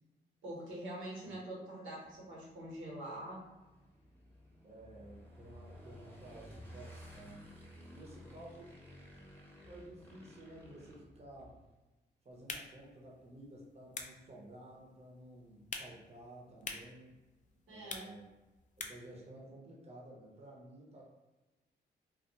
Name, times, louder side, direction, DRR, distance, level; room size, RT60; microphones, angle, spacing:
voice 1, 0.4-3.4 17.7-18.1, right 1 dB, 80° right, -4 dB, 1.0 m, -44 dB
Motorcycle / Engine, 2.0-11.7, equal, 10° left, 1.0 m, -55 dB
voice 2, 4.6-7.5 7.9-8.7 9.6-11.6 12.2-17.2 17.7-18.3 18.8-21.0, right 1 dB, 30° right, -3 dB, 0.8 m, -53 dB
sound 1, 12.3-19.2, left 4 dB, 40° left, 0.4 m, -49 dB
2.3 x 2.2 x 2.8 m, 1.1 s
cardioid pair, 60°, 20 cm